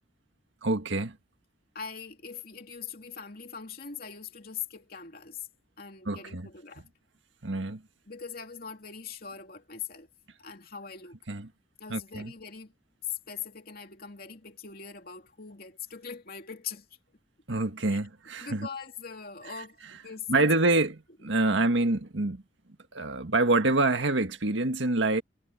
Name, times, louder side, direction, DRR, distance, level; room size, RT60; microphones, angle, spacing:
voice 1, 0.6-1.2 6.0-6.5 7.4-7.8 11.3-11.5 11.9-12.3 17.5-18.7 20.3-22.4 22.9-25.2, right 2 dB, 85° right, 1.7 m, -26 dB
voice 2, 1.7-5.5 5.8-6.8 8.1-10.1 10.4-11.2 11.8-12.7 13.3-16.9 17.9-18.0 18.4-20.5, left 6 dB, 50° left, 2.9 m, -42 dB
head